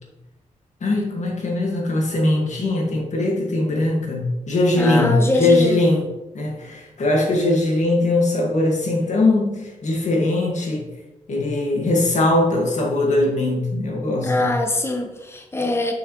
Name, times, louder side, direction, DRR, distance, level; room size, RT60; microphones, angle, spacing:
voice 1, 0.8-6.0 6.3-10.9 11.3-14.5, left 2 dB, 65° left, 0 dB, 1.9 m, -20 dB
voice 2, 4.8-5.9 14.2-15.9, left 2 dB, 20° left, 4 dB, 1.0 m, -23 dB
7.0 x 6.3 x 3.1 m, 1.0 s
cardioid pair, 80°, 13 cm